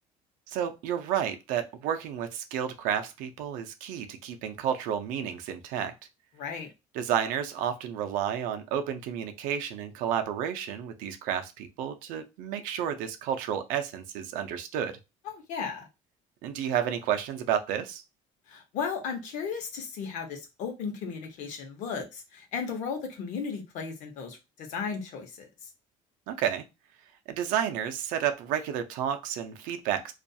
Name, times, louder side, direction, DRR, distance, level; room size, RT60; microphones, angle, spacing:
voice 1, 0.5-5.9 6.9-15.0 16.4-18.0 26.3-26.6 27.3-30.1, right 9 dB, 85° right, 8 dB, 0.5 m, -31 dB
voice 2, 6.4-6.7 15.2-15.9 18.5-25.7, left 6 dB, 65° left, 4 dB, 0.8 m, -35 dB
2.4 x 2.3 x 2.6 m, 0.25 s
cardioid pair, 155°, 14 cm